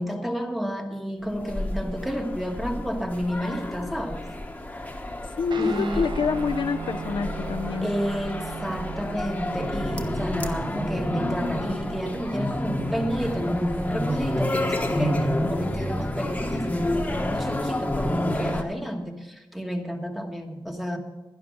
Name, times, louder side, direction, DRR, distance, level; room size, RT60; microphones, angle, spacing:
voice 1, 0.0-4.2 5.6-6.1 7.8-21.0, equal, ahead, 1.3 m, -31 dB
sound 1, 1.3-18.6, left 1 dB, 15° left, 1.2 m, -29 dB
voice 2, 5.4-7.9, left 5 dB, 70° left, 0.5 m, -26 dB
Guitar, 5.5-14.3, right 6 dB, 65° right, 0.8 m, -39 dB
11.5 x 11.0 x 6.0 m
wide cardioid pair, 115°, 9 cm